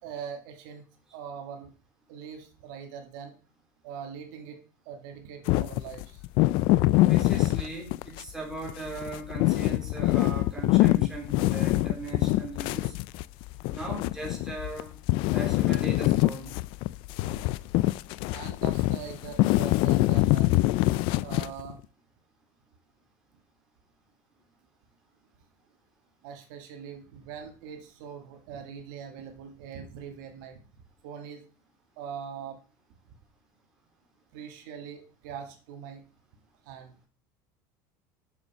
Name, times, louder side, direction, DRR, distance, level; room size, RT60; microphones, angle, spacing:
voice 1, 0.0-0.9 1.1-1.7 2.1-3.3 3.8-6.2 17.2-17.5 18.3-20.5 21.2-21.8 26.2-30.6 31.0-31.4 32.0-32.6 34.3-36.0 36.7-37.0, right 7 dB, 75° right, 4 dB, 2.1 m, -42 dB
sound 1, 5.5-8.3 8.7-14.8 15.1-21.7, left 18 dB, 55° left, 0.4 m, -24 dB
voice 2, 7.1-12.9 13.7-14.9 15.3-16.6, right 2 dB, 5° right, -2 dB, 3.4 m, -39 dB
7.0 x 6.9 x 5.7 m, 0.38 s
cardioid pair, 145°, 10 cm